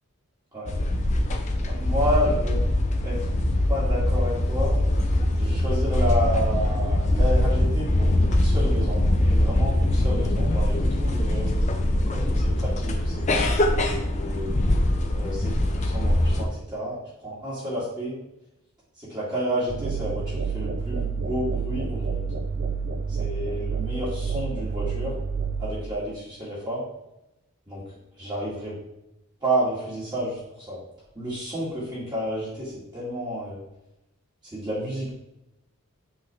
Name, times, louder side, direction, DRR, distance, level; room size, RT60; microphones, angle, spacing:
sound 1, 0.7-16.5, left 1 dB, 30° left, 0.5 m, -22 dB
voice 1, 1.7-2.6 3.0-3.3 3.7-4.8 5.4-11.5 12.1-14.5 15.1-15.5 15.8-18.2 19.0-22.3 23.1-25.1 25.6-26.8 27.7-27.8 28.2-28.7 29.4-30.8 31.2-33.6 34.5-35.1, equal, 20° right, -9 dB, 2.1 m, -30 dB
sound 2, 19.7-25.7, right 5 dB, 45° right, 0.4 m, -29 dB
7.6 x 4.0 x 3.4 m, 0.91 s
head